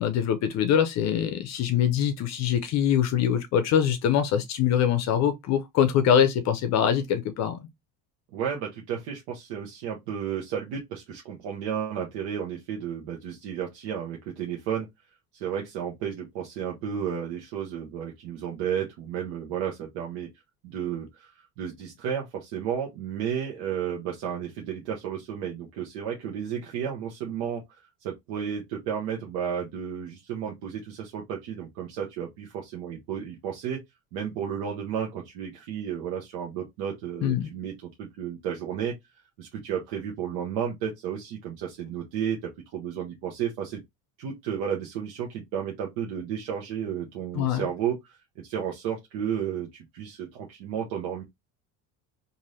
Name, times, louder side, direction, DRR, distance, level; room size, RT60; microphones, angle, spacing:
voice 1, 0.0-7.6 37.2-37.5 47.4-47.7, left 9 dB, 50° left, 0.5 m, -23 dB
voice 2, 8.3-14.9 15.3-20.3 20.6-33.8 34.1-38.9 39.4-43.8 44.2-51.2, right 8 dB, 80° right, 0.9 m, -32 dB
3.2 x 2.6 x 2.6 m
cardioid pair, 135°, 35 cm